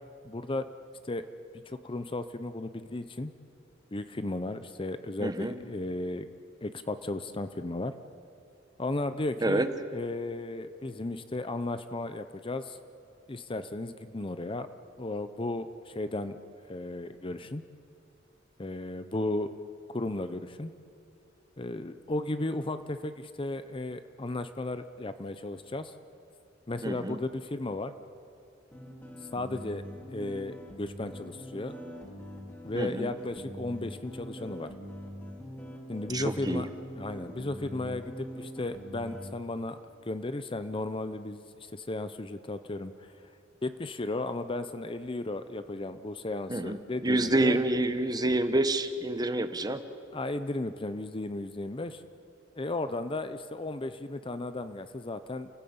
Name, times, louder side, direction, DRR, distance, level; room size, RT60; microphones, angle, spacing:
voice 1, 0.2-0.7 1.1-1.3 1.7-3.3 3.9-6.3 6.6-7.9 8.8-12.8 13.3-14.7 15.0-16.4 16.7-17.6 18.6-19.5 19.9-20.7 21.6-25.9 26.7-27.9 29.3-29.8 30.1-31.8 32.6-34.7 35.9-36.7 37.0-43.1 43.6-47.6 50.1-52.0 52.6-55.5, left 2 dB, 25° left, 11 dB, 0.7 m, -35 dB
voice 2, 5.2-5.5 9.4-9.7 26.8-27.2 32.7-33.1 36.1-36.6 46.5-46.8 47.0-49.8, right 1 dB, 20° right, 10 dB, 1.0 m, -27 dB
sound 1, 28.7-39.3, equal, 10° left, 3.2 m, -43 dB
29.0 x 15.5 x 8.7 m, 2.5 s
head